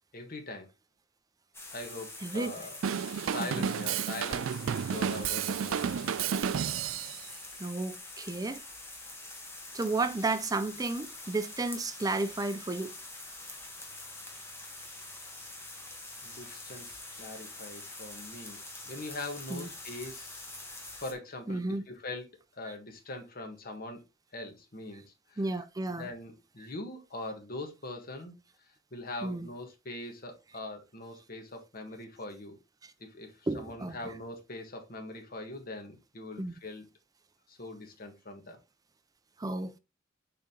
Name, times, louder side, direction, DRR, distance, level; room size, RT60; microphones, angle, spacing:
voice 1, 0.1-0.7 1.7-2.8 3.1-6.1 16.2-20.5 21.0-22.3 22.6-24.0 24.3-25.1 25.3-25.4 26.0-28.3 28.9-32.6 33.0-36.9 37.5-38.6, left 2 dB, 50° left, 1.5 m, -42 dB
sound 1, 1.5-21.1, left 2 dB, 15° left, 1.3 m, -45 dB
Drum kit / Drum, 2.8-7.2, right 8 dB, 85° right, 0.4 m, -31 dB
voice 2, 7.6-8.6 9.7-12.9 19.5-19.7 21.5-21.8 25.4-26.1 29.2-29.5 33.5-34.0 36.4-36.5 39.4-39.8, right 2 dB, 20° right, 0.5 m, -32 dB
6.8 x 3.7 x 3.6 m
head